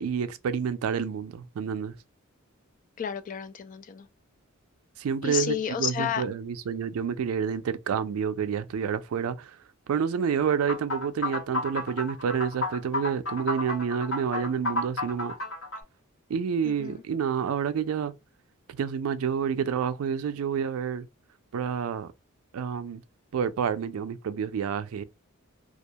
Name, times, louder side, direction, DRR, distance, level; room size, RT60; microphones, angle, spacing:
voice 1, 0.0-1.9 5.0-9.6 9.9-15.3 16.3-18.1 18.7-21.1 21.5-22.1 22.5-23.0 23.3-25.0, right 7 dB, 90° right, 0.4 m, -29 dB
voice 2, 3.0-4.1 5.2-6.3 16.6-17.0, left 8 dB, 40° left, 0.3 m, -31 dB
sound 1, 10.7-15.8, left 2 dB, 70° left, 1.1 m, -31 dB
2.3 x 2.2 x 2.7 m
head